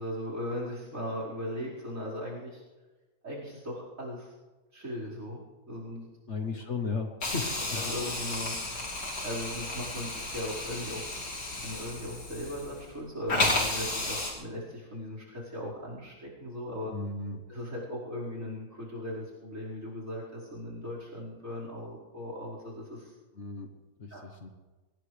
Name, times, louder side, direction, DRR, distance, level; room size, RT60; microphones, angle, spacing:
voice 1, 0.0-2.6 3.2-4.3 4.7-5.4 5.7-6.1 7.7-8.9 9.2-11.1 11.6-16.9 17.5-23.1 24.1-24.2, equal, 50° right, -6 dB, 5.3 m, -38 dB
voice 2, 6.3-7.8 16.9-17.4 23.4-23.7 24.0-24.5, left 4 dB, 50° left, 5 dB, 1.3 m, -35 dB
Hiss, 7.2-12.9 13.3-14.3, left 2 dB, 70° left, 3.1 m, -33 dB
22.5 x 19.0 x 3.3 m, 1.2 s
omnidirectional pair, 1.7 m